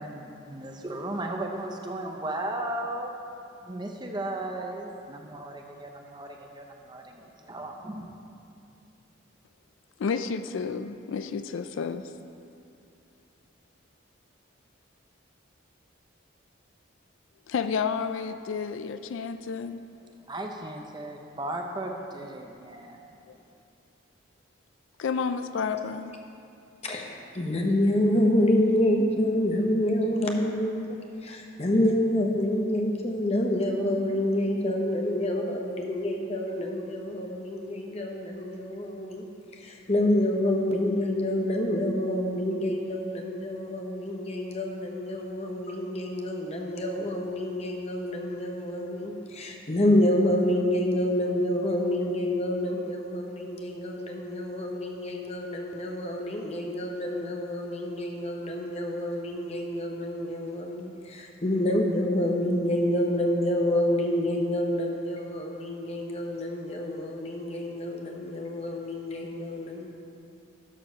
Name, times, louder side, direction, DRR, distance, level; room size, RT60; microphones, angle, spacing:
voice 1, 0.0-3.1 3.6-8.2 20.2-23.0, right 1 dB, 20° right, 0.6 m, -36 dB
voice 2, 10.0-12.1 17.5-19.8 23.3-23.4 25.0-26.1, left 5 dB, 75° left, 0.3 m, -31 dB
voice 3, 26.8-39.2 39.5-69.9, left 1 dB, 30° left, 0.9 m, -27 dB
11.5 x 4.6 x 6.3 m
head